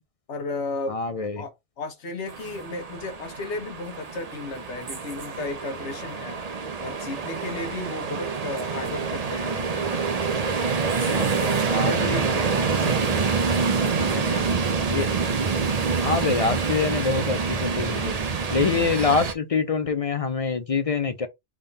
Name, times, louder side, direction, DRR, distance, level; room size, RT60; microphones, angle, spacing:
voice 1, 0.3-1.0 1.4-6.4 6.8-10.3 11.0-14.6, left 3 dB, 75° left, 1.4 m, -35 dB
voice 2, 0.9-1.4 11.7-12.2 14.9-15.1 16.0-18.2 18.5-21.3, left 4 dB, 45° left, 0.4 m, -25 dB
sound 1, 2.3-19.3, right 5 dB, 40° right, 0.6 m, -26 dB
3.7 x 3.6 x 4.0 m
omnidirectional pair, 1.2 m